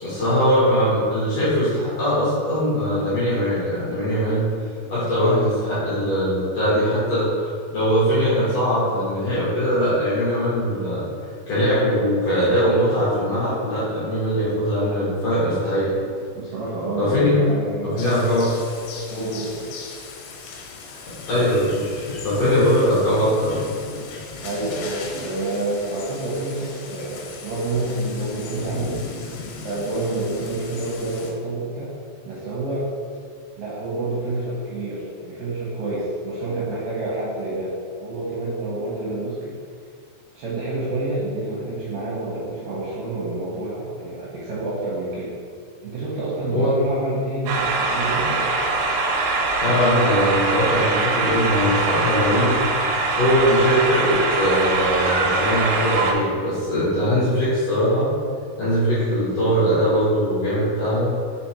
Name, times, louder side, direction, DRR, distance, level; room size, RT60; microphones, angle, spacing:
voice 1, 0.0-4.5 4.9-7.3 7.7-11.0 11.5-15.9 17.0-17.3 17.8-18.5 21.3-21.8 22.2-23.6 46.5-46.7 49.6-52.6 53.2-58.1 58.6-61.1, equal, 70° left, -10 dB, 1.5 m, -21 dB
voice 2, 16.3-18.1 19.1-19.7 22.4-22.5 24.4-29.0 29.6-31.9 32.3-32.9 33.6-39.6 40.3-45.3 45.8-48.4, right 2 dB, 75° right, -7 dB, 2.4 m, -28 dB
sound 1, 18.0-31.3, left 4 dB, 90° left, 2.9 m, -37 dB
sound 2, 47.5-56.1, right 3 dB, 90° right, 2.8 m, -22 dB
4.9 x 4.9 x 4.3 m, 2.2 s
omnidirectional pair, 4.9 m